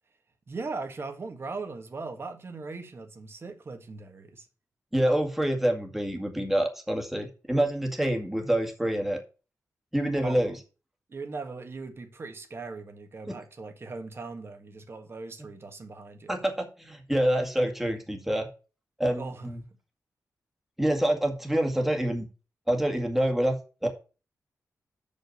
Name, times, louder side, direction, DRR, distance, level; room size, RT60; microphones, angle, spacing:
voice 1, 0.5-4.5 10.2-10.5 11.1-16.4 19.1-19.5, right 3 dB, 45° right, 1.6 m, -39 dB
voice 2, 4.9-9.2 9.9-10.5 13.3-13.4 16.3-18.5 19.0-19.6 20.8-22.2 22.7-23.6 23.8-23.9, right 1 dB, 5° right, 1.9 m, -26 dB
6.3 x 5.4 x 6.6 m
wide cardioid pair, 115°, 6 cm